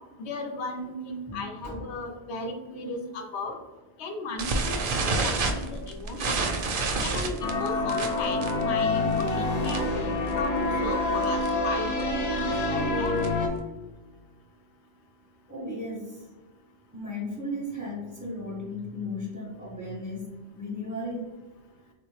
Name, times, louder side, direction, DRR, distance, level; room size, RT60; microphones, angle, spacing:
voice 1, 0.2-3.6 4.0-4.8 5.2-6.4 7.0-9.9 10.3-13.2, left 2 dB, 80° left, 4 dB, 0.9 m, -35 dB
voice 2, 1.3-1.8 7.0-7.5 15.5-16.3 16.9-21.3, left 1 dB, 10° right, -5 dB, 0.5 m, -36 dB
sound 1, 4.4-10.0 10.3-10.6 10.8-10.9 11.2-11.5 12.0-13.5, right 3 dB, 60° right, 0.6 m, -29 dB
sound 2, 7.4-13.5, left 2 dB, 55° left, 0.5 m, -27 dB
3.7 x 2.4 x 3.1 m, 1.2 s
omnidirectional pair, 1.1 m